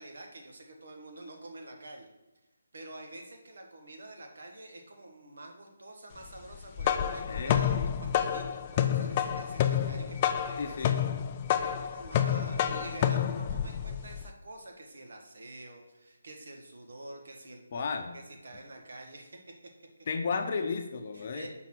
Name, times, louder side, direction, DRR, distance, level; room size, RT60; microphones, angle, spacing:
voice 1, 0.0-2.1 2.7-11.0 11.5-19.5 21.1-21.5, right 2 dB, 65° right, 3 dB, 1.4 m, -47 dB
sound 1, 6.5-14.3, left 9 dB, 25° left, 0.3 m, -29 dB
voice 2, 7.3-7.7 10.6-11.0 17.7-18.1 20.1-21.5, left 5 dB, 40° left, 5 dB, 0.8 m, -33 dB
5.8 x 4.0 x 6.1 m, 1.0 s
hypercardioid pair, 165°, 0 cm